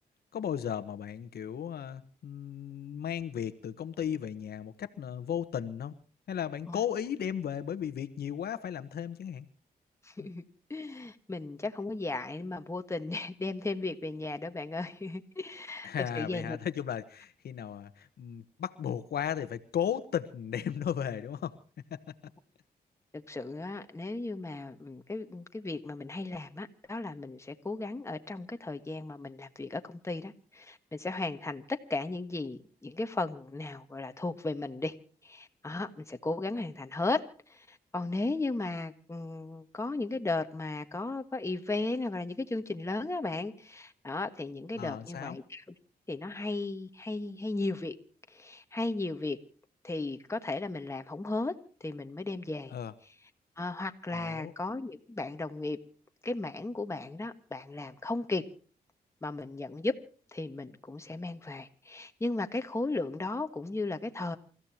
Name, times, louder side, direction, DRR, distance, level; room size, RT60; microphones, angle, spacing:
voice 1, 0.3-5.9 6.3-9.5 10.2-10.3 15.8-21.6 21.9-22.0 44.8-45.4 52.7-52.9 54.1-54.5, left 9 dB, 75° left, 11 dB, 1.2 m, -35 dB
voice 2, 10.0-10.4 10.7-16.6 23.1-34.9 35.2-37.2 37.5-45.6 46.1-47.9 48.3-49.4 49.8-51.5 51.8-52.7 53.6-55.8 56.2-58.4 59.2-60.0 60.3-64.4, left 2 dB, 15° left, 7 dB, 1.5 m, -35 dB
28.5 x 15.0 x 2.9 m, 0.41 s
cardioid pair, 95°, 16 cm